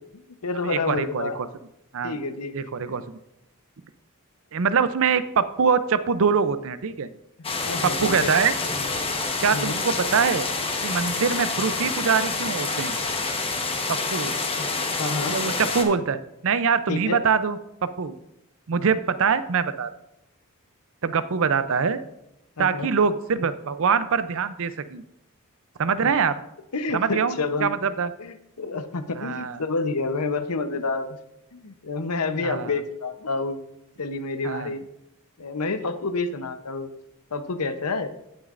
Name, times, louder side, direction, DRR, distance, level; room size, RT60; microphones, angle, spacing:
voice 1, 0.1-1.4 2.0-2.6 2.9-3.0 7.4-8.3 9.5-9.8 14.6-14.7 15.0-15.4 16.9-17.2 22.6-22.9 26.0-26.1 26.7-27.7 28.2-31.1 31.5-33.6 34.0-34.9 35.4-36.9 37.3-38.1, left 3 dB, 85° left, 9 dB, 0.8 m, -29 dB
voice 2, 0.7-1.5 1.9-2.2 2.5-3.2 4.5-7.1 8.0-8.5 9.4-10.5 10.8-12.9 13.9-14.3 15.3-16.2 16.4-17.6 18.0-18.1 18.7-19.9 21.0-22.0 22.6-25.0 25.8-26.3 26.9-28.1 29.2-29.6 32.4-32.7 34.4-34.7, right 6 dB, 60° right, 13 dB, 0.5 m, -23 dB
sound 1, 7.4-15.8, left 3 dB, 25° left, 1.1 m, -27 dB
16.5 x 6.4 x 2.5 m, 0.85 s
head